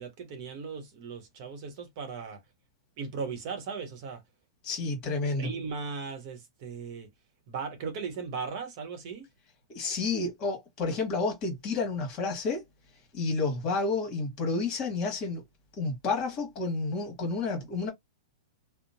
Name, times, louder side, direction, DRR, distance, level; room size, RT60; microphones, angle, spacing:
voice 1, 0.0-2.4 3.0-4.2 5.3-7.1 7.5-9.3, right 5 dB, 45° right, 0.9 m, -37 dB
voice 2, 4.6-5.5 9.7-12.6 13.1-15.4 15.8-17.9, left 3 dB, 30° left, 1.4 m, -30 dB
2.8 x 2.1 x 2.6 m
hypercardioid pair, 145°, 3 cm